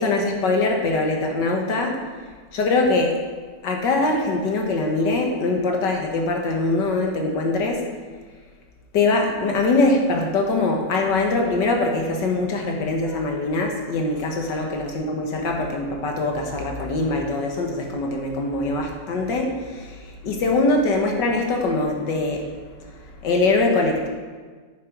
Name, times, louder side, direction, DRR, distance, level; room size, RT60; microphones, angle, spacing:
voice 1, 0.0-2.0 2.5-3.2 3.6-7.9 8.9-20.0 20.2-22.4 23.2-24.1, left 2 dB, 80° left, 1 dB, 2.0 m, -22 dB
9.4 x 7.4 x 5.2 m, 1.4 s
omnidirectional pair, 1.9 m